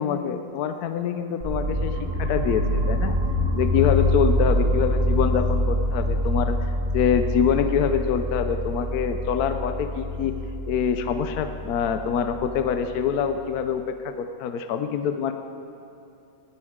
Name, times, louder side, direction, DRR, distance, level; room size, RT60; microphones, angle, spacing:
voice 1, 0.0-3.1 3.5-6.6 6.9-10.4 10.7-15.3, left 7 dB, 70° left, 8 dB, 1.0 m, -25 dB
sound 1, 1.4-13.3, left 1 dB, 30° right, 1.4 m, -25 dB
19.5 x 13.5 x 3.6 m, 2.7 s
omnidirectional pair, 2.0 m